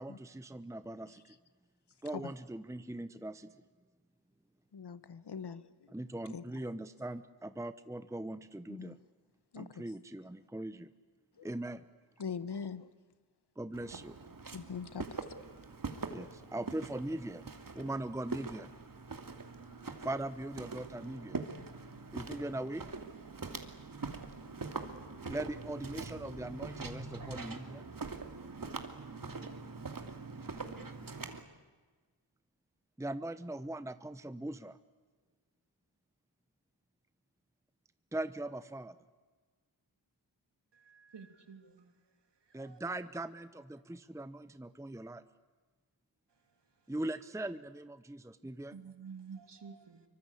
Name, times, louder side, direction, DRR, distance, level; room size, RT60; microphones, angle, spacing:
voice 1, 0.0-1.4 2.0-3.5 5.9-9.0 9.6-10.9 11.4-11.8 13.6-14.2 16.1-18.7 20.0-21.4 22.1-22.8 25.3-27.8 33.0-34.8 38.1-38.9 42.5-45.2 46.9-48.7, right 1 dB, 5° right, 12 dB, 0.9 m, -40 dB
voice 2, 4.7-5.9 6.3-6.4 8.7-9.0 9.5-9.8 11.4-11.5 12.2-12.9 14.5-15.2, left 6 dB, 55° left, 14 dB, 1.3 m, -42 dB
Walk footsteps, 13.7-31.4, right 4 dB, 45° right, 2.7 m, -43 dB
voice 3, 40.7-42.0 42.5-42.8 48.7-50.0, right 6 dB, 60° right, 7 dB, 3.2 m, -50 dB
25.5 x 24.5 x 8.5 m, 1.4 s
wide cardioid pair, 75°, 46 cm